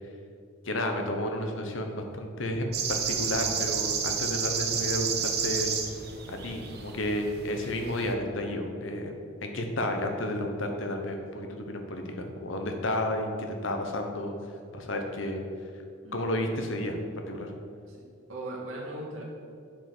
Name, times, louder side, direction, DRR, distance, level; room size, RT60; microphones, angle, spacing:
voice 1, 0.6-2.7 3.1-5.7 6.3-9.1 9.4-14.3 14.7-15.4 16.1-17.0 17.3-17.5, left 1 dB, 70° left, 4 dB, 1.1 m, -31 dB
sound 1, 2.7-8.1, right 7 dB, 50° right, 0.9 m, -31 dB
voice 2, 18.3-19.2, right 1 dB, 85° right, -3 dB, 2.2 m, -38 dB
8.5 x 5.2 x 6.1 m, 2.4 s
head